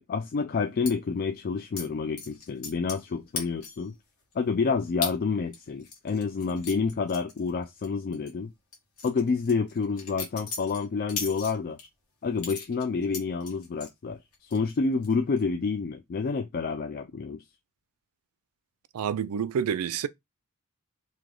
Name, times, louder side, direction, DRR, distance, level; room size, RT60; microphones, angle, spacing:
voice 1, 0.0-3.9 4.3-8.5 9.0-11.8 12.2-17.4, left 4 dB, 45° left, 0.4 m, -29 dB
sound 1, 0.9-1.0 1.8-1.9 2.2-3.1 3.4-3.9 4.3-4.4 5.0-5.2 5.5-7.9 8.1-8.3 8.7-11.9 12.4-13.9 14.3-14.8 15.0-15.4, left 5 dB, 85° left, 1.5 m, -37 dB
voice 2, 18.9-20.1, right 7 dB, 85° right, 0.4 m, -28 dB
3.2 x 2.9 x 3.7 m
head